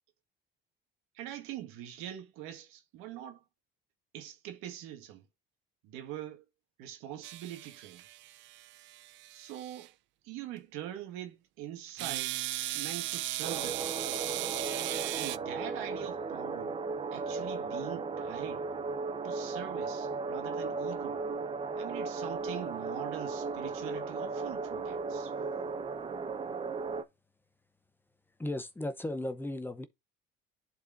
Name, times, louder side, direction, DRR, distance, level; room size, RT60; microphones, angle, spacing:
voice 1, 1.1-3.4 4.1-5.3 5.8-6.4 6.8-8.0 9.3-9.9 10.2-12.4 12.7-14.0 15.1-16.8 17.1-18.7 19.2-21.2 21.8-25.3, right 11 dB, 90° right, 1.7 m, -43 dB
sound 1, 7.2-9.9 12.0-15.4, right 16 dB, 65° right, 0.5 m, -37 dB
sound 2, 13.4-27.0, right 4 dB, 25° right, 0.8 m, -36 dB
voice 2, 28.4-29.9, left 1 dB, 10° left, 0.8 m, -35 dB
11.0 x 4.6 x 2.6 m
cardioid pair, 125°, 21 cm